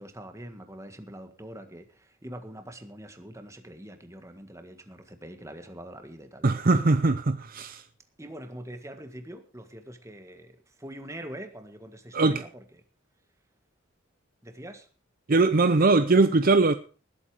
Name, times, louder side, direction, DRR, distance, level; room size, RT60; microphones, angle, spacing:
voice 1, 0.0-6.4 8.2-12.6 14.4-14.9, right 1 dB, 15° right, 1.7 m, -43 dB
voice 2, 6.4-7.8 12.1-12.4 15.3-16.7, right 3 dB, 45° right, 0.6 m, -21 dB
19.0 x 8.4 x 4.9 m
head